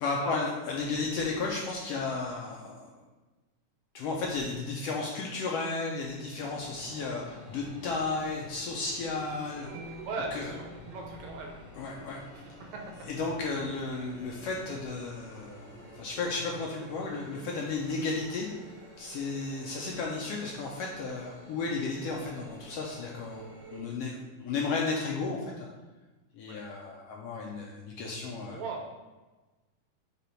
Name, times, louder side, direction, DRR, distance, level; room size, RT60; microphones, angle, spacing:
voice 1, 0.0-2.9 3.9-9.7 10.3-10.5 11.8-12.2 13.1-18.5 19.0-23.4 23.7-25.7 26.3-28.6, left 3 dB, 75° left, -2 dB, 1.5 m, -33 dB
sound 1, 6.4-23.8, equal, 45° right, 0.9 m, -50 dB
sound 2, 9.7-12.8, right 3 dB, 90° right, 2.0 m, -47 dB
voice 2, 10.0-10.7 10.9-11.6 12.3-12.4 12.7-12.8 26.5-26.6 28.4-29.0, right 3 dB, 75° right, 0 dB, 2.0 m, -38 dB
5.4 x 4.1 x 4.4 m, 1.2 s
omnidirectional pair, 3.3 m